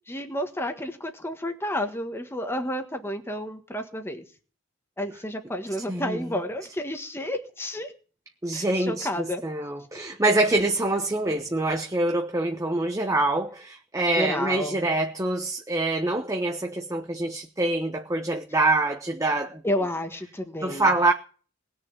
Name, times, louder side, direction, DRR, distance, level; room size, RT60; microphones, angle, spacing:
voice 1, 0.1-4.2 5.0-7.9 8.5-9.4 14.2-14.8 19.6-20.9, left 1 dB, 15° left, 1.6 m, -31 dB
voice 2, 5.9-6.3 8.4-19.6 20.6-21.1, right 2 dB, 15° right, 1.1 m, -25 dB
19.5 x 6.8 x 8.9 m
head